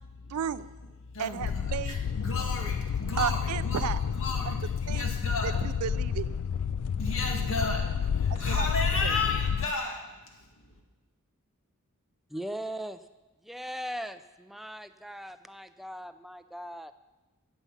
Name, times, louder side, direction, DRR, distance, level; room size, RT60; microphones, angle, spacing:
voice 1, 0.3-0.7 1.2-2.0 3.2-4.0 4.5-4.6 4.9-5.1 5.4-6.3 8.3-8.7 9.0-9.2, right 8 dB, 85° right, 16 dB, 0.4 m, -33 dB
voice 2, 1.0-5.5 6.7-10.8, left 3 dB, 65° left, 1 dB, 2.2 m, -34 dB
sound 1, 1.4-9.7, left 7 dB, 90° left, 0.4 m, -30 dB
voice 3, 12.3-13.0 13.4-16.9, equal, ahead, 10 dB, 0.4 m, -39 dB
16.0 x 7.2 x 5.7 m, 1.1 s
head